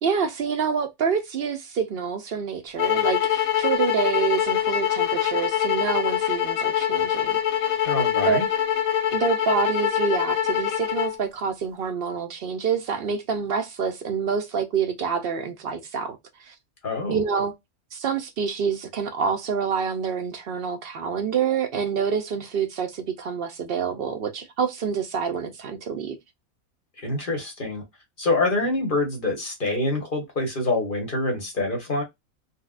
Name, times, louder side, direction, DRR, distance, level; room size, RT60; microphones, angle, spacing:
voice 1, 0.0-7.4 8.2-8.4 9.1-16.2 16.4-16.5 17.1-17.5 17.9-26.2, right 6 dB, 65° right, 0.6 m, -27 dB
sound 1, 2.8-11.2, left 10 dB, 75° left, 1.0 m, -24 dB
voice 2, 7.9-8.4 16.8-17.2 27.0-27.8 28.2-32.0, left 2 dB, 40° left, 1.2 m, -26 dB
4.0 x 2.2 x 2.4 m
omnidirectional pair, 1.5 m